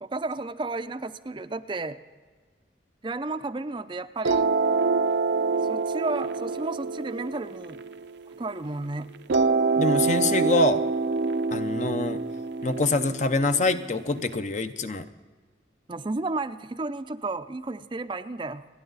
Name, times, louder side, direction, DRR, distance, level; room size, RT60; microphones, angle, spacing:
voice 1, 0.0-2.0 3.0-4.5 5.7-7.8 8.4-9.1 15.9-18.7, right 2 dB, 25° right, 10 dB, 0.5 m, -32 dB
sound 1, 4.2-8.6 9.3-14.2, right 4 dB, 70° right, 0.6 m, -26 dB
voice 2, 9.8-10.8 11.5-12.2 12.6-15.0, left 2 dB, 40° left, 9 dB, 0.7 m, -25 dB
29.5 x 10.0 x 4.0 m, 1.5 s
head